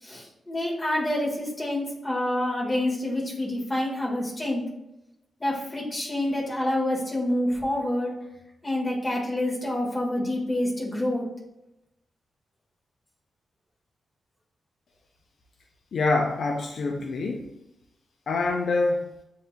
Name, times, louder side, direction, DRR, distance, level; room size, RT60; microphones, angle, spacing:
voice 1, 0.0-4.6 5.4-8.1 8.6-11.2, left 1 dB, 20° left, -5 dB, 1.6 m, -27 dB
voice 2, 15.9-17.5 18.3-19.0, left 3 dB, 65° left, 2 dB, 0.5 m, -25 dB
7.9 x 2.8 x 2.3 m, 0.89 s
wide cardioid pair, 120°, 0 cm